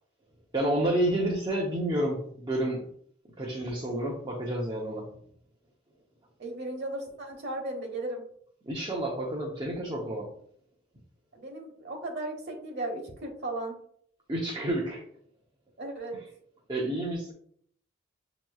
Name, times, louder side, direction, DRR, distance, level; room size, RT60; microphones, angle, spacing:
voice 1, 0.5-2.9 3.4-5.1 8.6-10.3 14.3-15.0 16.7-17.3, right 1 dB, 20° right, -2 dB, 0.7 m, -29 dB
voice 2, 6.4-8.2 11.3-13.8 15.8-16.2, right 2 dB, 55° right, 2 dB, 1.2 m, -36 dB
7.5 x 3.0 x 2.3 m, 0.63 s
head